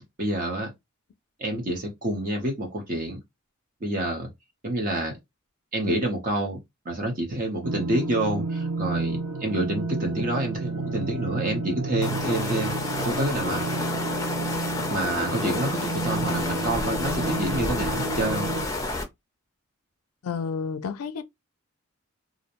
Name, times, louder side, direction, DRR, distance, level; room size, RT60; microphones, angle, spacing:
voice 1, 0.2-0.7 1.4-3.2 3.8-4.3 4.6-5.2 5.7-6.6 6.9-13.6 14.9-18.5, right 1 dB, 40° right, 0.7 m, -28 dB
sound 1, 7.6-18.7, right 3 dB, 85° right, 0.5 m, -31 dB
sound 2, 12.0-19.0, left 2 dB, 15° left, 0.5 m, -30 dB
voice 2, 20.2-21.2, left 5 dB, 85° left, 0.4 m, -30 dB
2.4 x 2.1 x 2.8 m
head